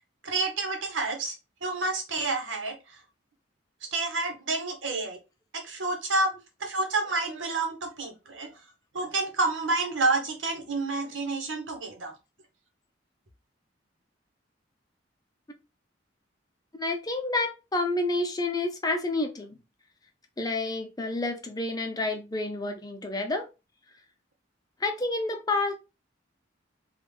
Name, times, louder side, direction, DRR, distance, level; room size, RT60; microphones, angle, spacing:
voice 1, 0.2-1.3 1.6-2.8 3.9-5.2 5.5-6.3 6.6-8.5 8.9-12.1, right 3 dB, 85° right, 1.0 m, -29 dB
voice 2, 16.7-19.6 20.4-23.5 24.8-25.7, left 2 dB, 20° left, 0.6 m, -29 dB
3.6 x 2.3 x 3.3 m
head